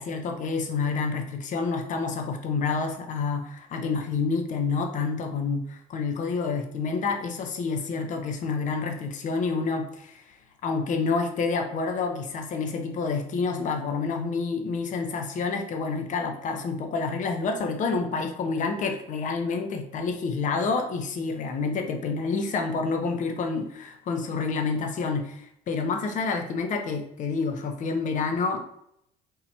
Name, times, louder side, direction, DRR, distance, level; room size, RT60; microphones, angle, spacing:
voice 1, 0.0-10.4 10.6-28.6, left 4 dB, 55° left, 5 dB, 0.8 m, -28 dB
3.9 x 2.8 x 4.2 m, 0.74 s
supercardioid pair, 85°, 16 cm